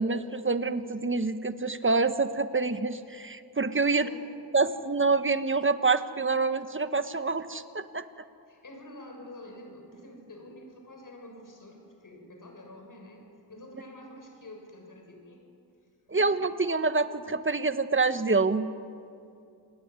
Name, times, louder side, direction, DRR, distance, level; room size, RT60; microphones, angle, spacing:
voice 1, 0.0-4.1 4.5-8.0 16.1-18.7, right 3 dB, 30° right, 10 dB, 1.5 m, -26 dB
voice 2, 8.5-15.4 16.1-16.5, left 1 dB, 50° left, 2 dB, 7.2 m, -48 dB
28.5 x 21.0 x 9.8 m, 2.5 s
wide cardioid pair, 85°, 40 cm